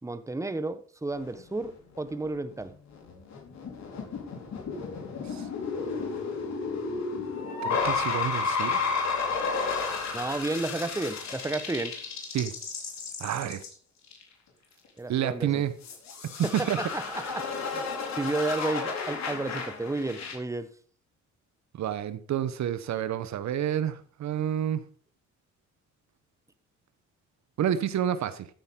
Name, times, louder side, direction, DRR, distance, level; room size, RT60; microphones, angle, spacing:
voice 1, 0.0-2.7 10.1-11.9 15.0-15.6 16.4-17.8 18.2-20.7, right 2 dB, 10° right, 1.1 m, -32 dB
sound 1, 1.1-1.6 2.0-2.1 2.5-2.6 2.9-13.7 14.1-14.2 15.8-20.3, left 4 dB, 65° left, 4.1 m, -32 dB
voice 2, 7.6-8.8 12.3-12.5 13.2-13.6 15.1-15.7 16.7-16.8 21.7-24.8 27.6-28.5, right 10 dB, 65° right, 0.9 m, -29 dB
14.5 x 8.9 x 3.7 m
cardioid pair, 90°, 30 cm